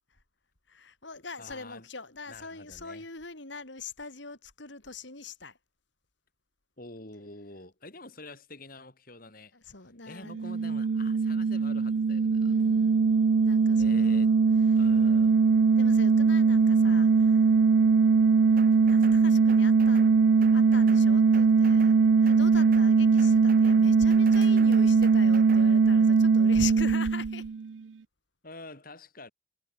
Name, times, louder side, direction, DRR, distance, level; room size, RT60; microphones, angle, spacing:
voice 1, 0.7-5.6 9.5-10.5 12.3-14.4 14.7-14.9 15.8-17.6 18.8-27.5, left 3 dB, 65° left, 4.2 m, -42 dB
voice 2, 1.4-1.9 2.3-3.1 6.8-9.5 10.1-12.6 13.8-14.3 14.8-15.4 28.4-29.3, left 2 dB, 45° left, 4.3 m, -47 dB
sound 1, 10.3-27.8, right 5 dB, 65° right, 0.4 m, -21 dB
sound 2, 18.6-19.2 19.5-20.1 20.4-21.1 21.3-22.0 22.3-22.9 23.2-23.8 24.1-25.7, right 4 dB, 45° right, 1.6 m, -46 dB
head